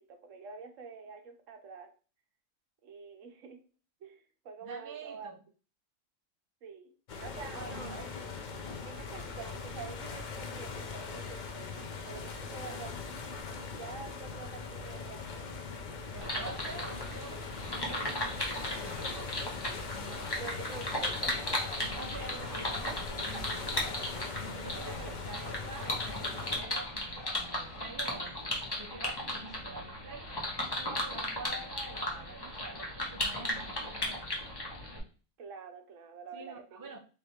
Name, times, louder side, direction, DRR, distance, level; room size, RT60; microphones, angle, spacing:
voice 1, 0.0-1.9 2.8-3.6 4.0-5.3 6.6-6.9 7.2-8.2 8.8-15.5 20.3-21.7 35.4-37.0, right 5 dB, 70° right, 5 dB, 1.1 m, -47 dB
voice 2, 4.6-5.4 7.5-8.0 16.1-19.3 19.8-20.6 21.8-24.1 24.4-28.4 28.8-30.3 30.8-34.2 36.3-37.0, right 3 dB, 30° right, 4 dB, 0.3 m, -46 dB
sound 1, 7.1-26.6, left 4 dB, 55° left, 0.5 m, -41 dB
sound 2, 16.2-35.0, left 1 dB, 20° left, 1.0 m, -36 dB
Bird, 21.4-28.8, left 4 dB, 80° left, 1.3 m, -52 dB
3.6 x 3.4 x 4.3 m, 0.37 s
omnidirectional pair, 1.4 m